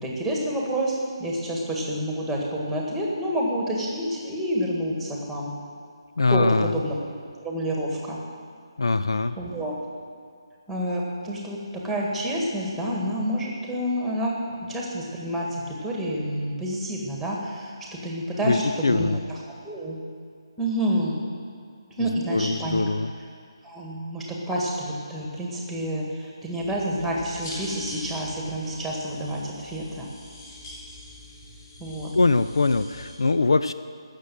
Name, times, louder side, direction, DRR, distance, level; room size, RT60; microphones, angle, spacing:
voice 1, 0.0-5.5 6.3-7.0 7.4-8.2 9.4-9.7 10.7-20.0 20.6-21.2 22.0-22.8 23.6-30.1 31.8-32.1, equal, 5° right, -2 dB, 1.7 m, -28 dB
voice 2, 6.2-6.7 8.8-9.4 18.4-19.2 22.0-23.1 32.1-33.7, left 3 dB, 65° left, 12 dB, 0.4 m, -22 dB
sound 1, 26.6-33.1, left 2 dB, 30° left, 3.5 m, -43 dB
16.0 x 6.7 x 7.7 m, 2.2 s
figure-of-eight pair, 150°, 3 cm